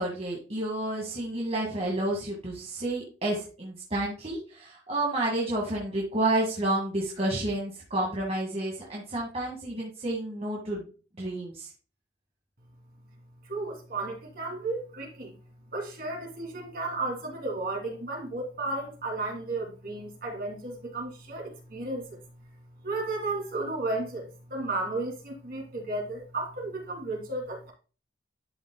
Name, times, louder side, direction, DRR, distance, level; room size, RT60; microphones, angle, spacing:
voice 1, 0.0-10.8 11.2-11.7, right 1 dB, 35° right, -3 dB, 1.8 m, -30 dB
voice 2, 13.4-15.4 15.7-22.2 22.8-27.7, right 2 dB, 55° right, 0 dB, 2.9 m, -33 dB
12.0 x 5.2 x 2.2 m, 0.35 s
head